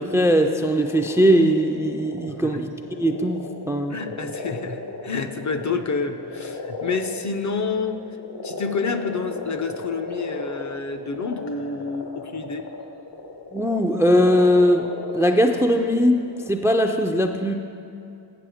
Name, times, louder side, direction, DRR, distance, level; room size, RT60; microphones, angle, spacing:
voice 1, 0.0-2.7 3.0-4.0 13.5-14.9 15.1-16.2 16.5-17.5, equal, 5° right, 4 dB, 0.3 m, -20 dB
sound 1, 0.6-16.4, left 3 dB, 80° left, 1.3 m, -35 dB
voice 2, 3.9-8.0 8.4-12.6, left 4 dB, 45° left, 8 dB, 0.5 m, -28 dB
7.6 x 7.4 x 4.9 m, 2.6 s
wide cardioid pair, 95°, 42 cm